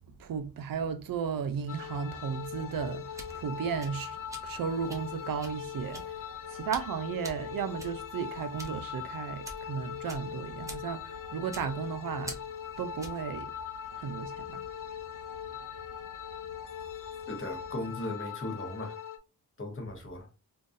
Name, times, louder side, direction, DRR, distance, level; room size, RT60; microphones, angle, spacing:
voice 1, 0.2-4.2 4.4-6.1 6.5-12.4 12.8-13.5 14.0-14.6, right 7 dB, 65° right, 0.5 m, -34 dB
sound 1, 1.7-19.2, left 8 dB, 55° left, 0.5 m, -41 dB
sound 2, 2.9-13.3, right 1 dB, 10° right, 0.6 m, -48 dB
voice 2, 17.3-19.0 19.6-20.3, left 2 dB, 35° left, 1.0 m, -37 dB
3.8 x 2.5 x 2.5 m
wide cardioid pair, 135°, 37 cm